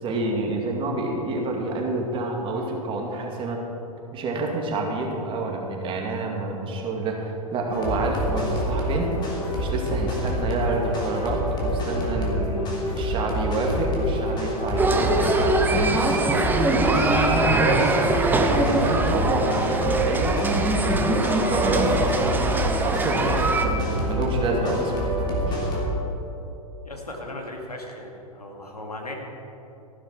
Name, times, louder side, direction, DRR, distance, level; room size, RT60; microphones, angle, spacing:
voice 1, 0.0-3.6 4.1-9.1 9.6-12.6 12.9-15.9 16.3-16.5 16.7-17.9 18.3-20.3 20.8-22.5 22.8-25.6, right 2 dB, 25° right, 0 dB, 2.2 m, -28 dB
sound 1, 7.7-25.9, equal, 25° left, 3.0 m, -27 dB
sound 2, 14.8-23.7, right 2 dB, 10° right, 0.9 m, -23 dB
voice 2, 26.8-29.1, left 1 dB, 90° left, 1 dB, 2.1 m, -37 dB
15.0 x 11.5 x 4.6 m, 2.9 s
figure-of-eight pair, 105°, 19 cm